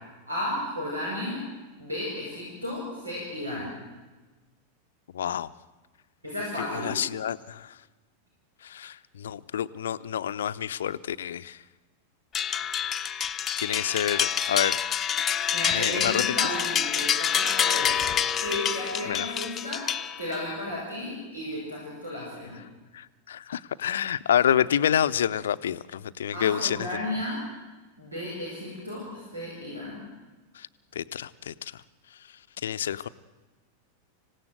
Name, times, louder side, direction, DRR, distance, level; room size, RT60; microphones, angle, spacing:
voice 1, 0.3-1.4 1.8-3.7 6.2-7.0 15.5-22.6 26.3-27.4 28.0-30.0, left 1 dB, 85° right, -4 dB, 6.8 m, -34 dB
voice 2, 5.1-5.5 6.7-7.7 8.6-11.6 13.6-14.8 15.7-16.2 19.1-19.3 22.9-26.9 30.6-30.7 31.0-31.7 32.6-33.1, left 9 dB, 65° left, 13 dB, 0.6 m, -28 dB
sound 1, 12.3-20.5, left 8 dB, 25° left, 0.8 m, -27 dB
26.5 x 17.0 x 7.9 m, 1.2 s
figure-of-eight pair, 90°, 0 cm